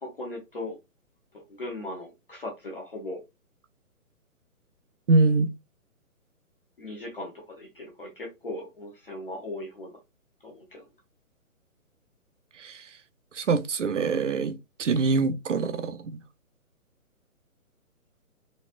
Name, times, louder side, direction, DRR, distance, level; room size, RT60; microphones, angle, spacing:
voice 1, 0.0-0.8 1.3-3.2 6.8-9.9 10.4-10.8, left 1 dB, 40° left, 0.8 m, -38 dB
voice 2, 5.1-5.5 12.6-12.8 13.4-14.5 14.8-16.2, right 3 dB, 55° right, 0.6 m, -24 dB
4.1 x 2.3 x 2.4 m
hypercardioid pair, 180°, 44 cm